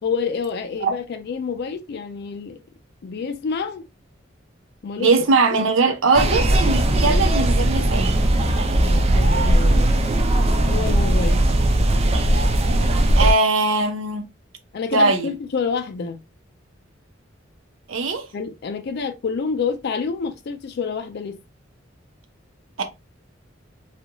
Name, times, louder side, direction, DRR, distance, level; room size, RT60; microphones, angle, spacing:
voice 1, 0.0-2.6 3.0-3.8 4.8-5.2 5.5-5.7 8.7-9.9 10.7-11.5 14.7-16.2 18.3-21.4, left 5 dB, 55° left, 0.4 m, -28 dB
voice 2, 5.0-8.2 13.2-14.3 14.9-15.3 17.9-18.2 22.8-22.9, right 3 dB, 85° right, 0.7 m, -20 dB
sound 1, 6.1-13.3, right 1 dB, 30° right, 0.4 m, -18 dB
2.9 x 2.4 x 2.2 m
head